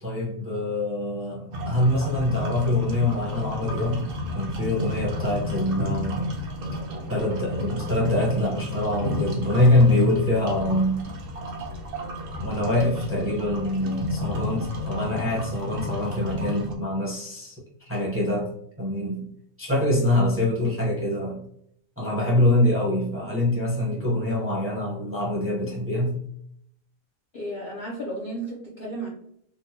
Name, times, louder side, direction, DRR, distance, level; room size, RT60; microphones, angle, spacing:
voice 1, 0.0-6.3 7.1-11.0 12.4-18.5 18.8-19.3 19.6-21.4 22.0-26.2, left 1 dB, 10° right, -5 dB, 0.7 m, -24 dB
sound 1, 1.5-16.7, left 1 dB, 55° right, 0.7 m, -32 dB
voice 2, 27.3-29.1, right 1 dB, 50° left, -4 dB, 0.6 m, -33 dB
3.7 x 2.1 x 2.8 m, 0.69 s
omnidirectional pair, 1.5 m